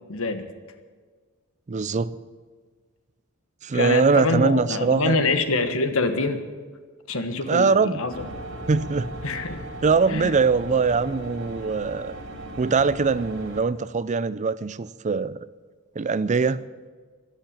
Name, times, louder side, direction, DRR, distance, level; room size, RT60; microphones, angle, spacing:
voice 1, 0.1-0.6 3.7-6.4 7.1-8.3 9.2-9.6 10.1-10.3, left 3 dB, 65° left, 9 dB, 1.4 m, -25 dB
voice 2, 1.7-2.2 3.6-5.2 7.5-8.0 8.7-9.1 9.8-12.1 12.6-15.5 16.0-16.6, right 4 dB, 35° right, 17 dB, 0.4 m, -22 dB
sound 1, 8.1-13.6, right 1 dB, 60° right, 2.3 m, -37 dB
13.0 x 11.5 x 8.9 m, 1.5 s
head